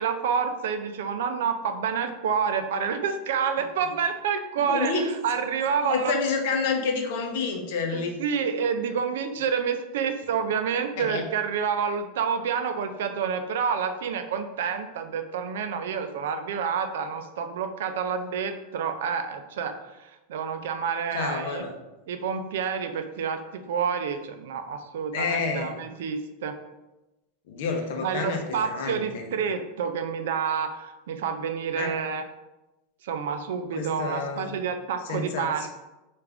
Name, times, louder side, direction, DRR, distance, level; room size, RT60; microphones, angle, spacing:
voice 1, 0.0-6.2 7.9-21.6 22.1-26.6 28.0-32.2 33.0-35.7, right 6 dB, 80° right, 8 dB, 0.4 m, -28 dB
voice 2, 4.6-5.1 5.8-8.2 11.0-11.2 21.1-21.7 25.1-25.7 27.5-29.3 31.8-31.9 33.7-34.5 35.1-35.7, left 4 dB, 60° left, 3 dB, 0.6 m, -29 dB
3.5 x 2.4 x 3.4 m, 1.0 s
supercardioid pair, 175°, 0 cm